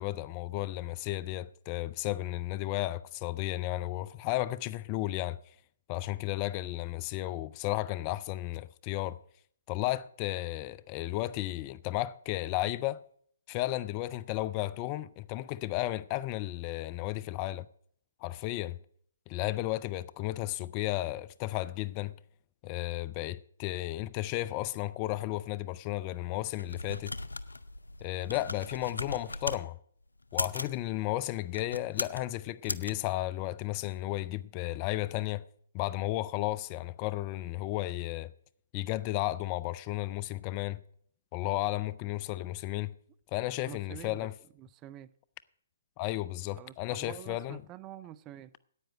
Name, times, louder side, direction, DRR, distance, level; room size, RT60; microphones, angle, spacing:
voice 1, 0.0-5.4 5.9-9.2 9.7-13.0 13.5-17.7 18.2-18.8 19.3-22.1 22.6-27.1 28.0-29.8 30.3-35.4 35.7-38.3 38.7-40.8 41.3-42.9 43.3-44.3 46.0-47.6, left 16 dB, 30° left, 0.5 m, -33 dB
sound 1, 26.4-29.6 30.2-30.8 31.5-32.2 32.6-32.9, left 2 dB, 90° left, 0.6 m, -37 dB
voice 2, 43.6-44.3 44.6-45.1 46.6-48.5, right 13 dB, 25° right, 0.4 m, -47 dB
9.9 x 9.0 x 7.5 m
figure-of-eight pair, 135°, 0 cm